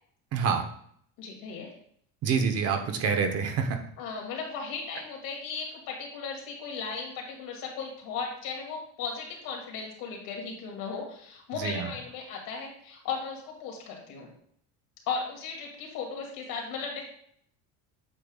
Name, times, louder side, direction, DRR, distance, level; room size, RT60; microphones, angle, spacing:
voice 1, 0.3-0.6 2.2-3.8 11.6-11.9, right 6 dB, 45° right, 5 dB, 1.0 m, -27 dB
voice 2, 1.2-1.7 4.0-14.3 15.1-17.0, left 5 dB, 75° left, 0 dB, 2.5 m, -36 dB
8.6 x 6.6 x 2.4 m, 0.64 s
cardioid pair, 160°, 34 cm